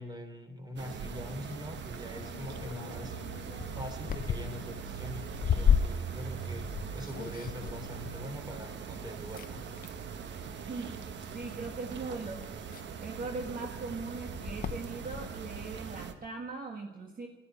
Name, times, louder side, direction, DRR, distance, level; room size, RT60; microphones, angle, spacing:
voice 1, 0.0-3.1 3.7-9.7, left 1 dB, 20° right, 7 dB, 3.0 m, -43 dB
sound 1, 0.8-16.1, right 6 dB, 65° right, 1.2 m, -41 dB
sound 2, 2.1-9.0 9.3-10.0 10.9-11.3 11.8-11.9 12.1-15.3, left 8 dB, 45° left, 0.5 m, -34 dB
voice 2, 10.7-12.4 13.0-17.3, right 3 dB, 45° right, 3 dB, 1.6 m, -40 dB
11.5 x 11.5 x 9.9 m, 1.1 s
cardioid pair, 90°, 20 cm